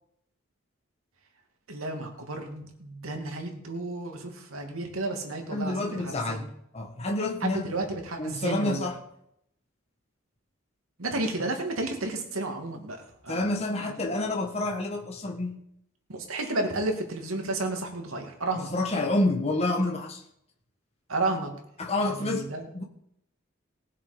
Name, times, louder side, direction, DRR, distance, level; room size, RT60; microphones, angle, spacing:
voice 1, 1.7-6.5 7.4-8.9 11.0-13.4 13.8-14.0 16.1-18.7 21.1-21.5 22.0-22.7, right 2 dB, 90° right, 3 dB, 2.4 m, -32 dB
voice 2, 5.5-6.4 6.7-7.7 8.2-9.0 13.3-15.6 18.7-20.2 21.8-22.8, left 2 dB, 30° left, 1 dB, 1.4 m, -28 dB
19.0 x 7.3 x 5.1 m, 0.75 s
head